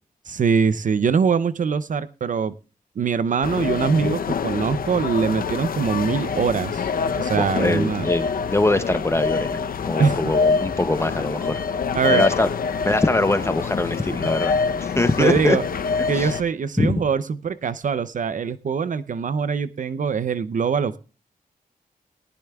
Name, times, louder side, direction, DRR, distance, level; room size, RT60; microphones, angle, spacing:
voice 1, 0.3-2.5 3.0-6.9 7.2-8.1 10.0-10.2 11.9-12.3 14.0-14.1 15.2-15.6 16.1-21.0, right 6 dB, 60° right, 14 dB, 0.5 m, -23 dB
sound 1, 3.4-16.4, left 5 dB, 70° left, 0.7 m, -26 dB
voice 2, 7.4-11.6 12.0-12.5 12.8-14.5 14.8-15.6 16.1-16.3 16.8-16.9, left 2 dB, 15° left, 11 dB, 0.6 m, -22 dB
19.0 x 13.5 x 2.3 m, 0.34 s
wide cardioid pair, 140°, 15 cm